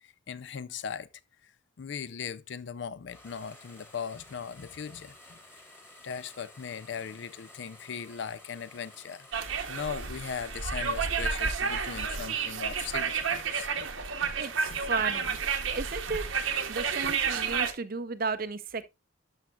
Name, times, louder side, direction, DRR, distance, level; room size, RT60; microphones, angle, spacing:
voice 1, 0.0-1.1 1.8-5.4 6.0-9.3 9.7-13.9 14.2-14.3 14.7-14.8 16.1-16.2 17.0-17.1, left 7 dB, 55° left, 0.4 m, -39 dB
sound 1, 3.1-12.5 12.8-15.3, left 1 dB, 10° left, 1.4 m, -53 dB
sound 2, 9.3-17.7, right 6 dB, 70° right, 0.9 m, -31 dB
voice 2, 14.4-15.4 15.8-16.2 16.7-18.9, right 4 dB, 45° right, 0.5 m, -34 dB
12.0 x 5.6 x 2.3 m
head